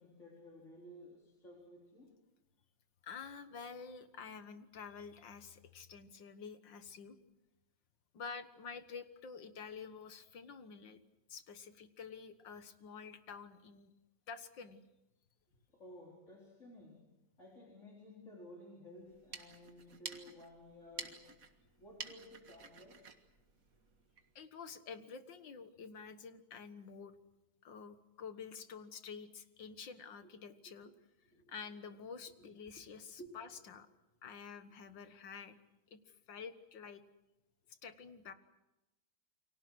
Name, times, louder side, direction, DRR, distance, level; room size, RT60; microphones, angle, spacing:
voice 1, 0.0-2.2 15.7-17.1 17.4-21.2 21.8-23.0 30.6-30.7 31.3-31.5 32.4-32.5 33.2-33.6, left 1 dB, 40° left, -2 dB, 4.4 m, -55 dB
voice 2, 3.0-7.2 8.1-11.0 11.3-13.9 14.3-14.8 24.4-27.1 27.6-30.9 31.5-33.9 34.2-35.6 35.9-37.0 37.7-38.3, left 5 dB, 75° left, 10 dB, 2.2 m, -49 dB
sound 1, 19.0-24.3, right 5 dB, 50° right, 2.0 m, -51 dB
29.0 x 24.0 x 6.3 m, 0.97 s
omnidirectional pair, 2.0 m